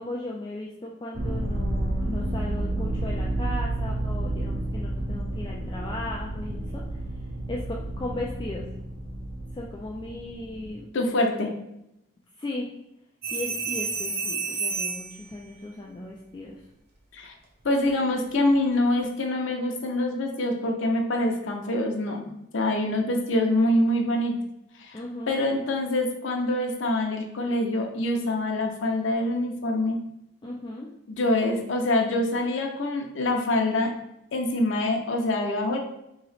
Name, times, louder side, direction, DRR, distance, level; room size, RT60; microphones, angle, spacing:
voice 1, 0.0-6.8 7.5-8.7 9.5-10.9 12.4-12.7 13.3-16.6 24.9-25.4 30.4-30.9, left 1 dB, 20° left, -3 dB, 0.3 m, -36 dB
sound 1, 1.1-10.7, right 1 dB, 85° right, 0.8 m, -30 dB
voice 2, 10.9-11.5 17.1-17.3 17.6-22.2 22.5-24.3 24.8-24.9 25.3-30.0 31.1-33.9 34.3-35.8, left 1 dB, 75° left, 2 dB, 0.6 m, -25 dB
sound 2, 13.2-15.2 17.6-17.9, right 4 dB, 55° right, 0.7 m, -30 dB
3.1 x 2.8 x 4.1 m, 0.85 s
head